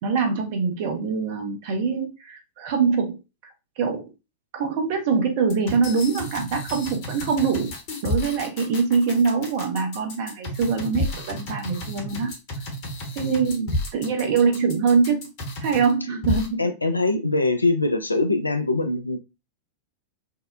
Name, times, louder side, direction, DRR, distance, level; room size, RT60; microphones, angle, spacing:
voice 1, 0.0-3.2 3.8-4.1 4.5-7.7 8.0-12.3 13.2-13.6 13.9-15.3 15.6-16.6, right 5 dB, 50° right, 0.6 m, -23 dB
sound 1, 5.5-15.9 16.2-16.5, left 1 dB, 45° left, 0.9 m, -31 dB
voice 2, 13.2-13.8 16.6-19.2, left 2 dB, 85° left, 0.4 m, -23 dB
2.7 x 2.0 x 2.3 m
figure-of-eight pair, 90°, 0 cm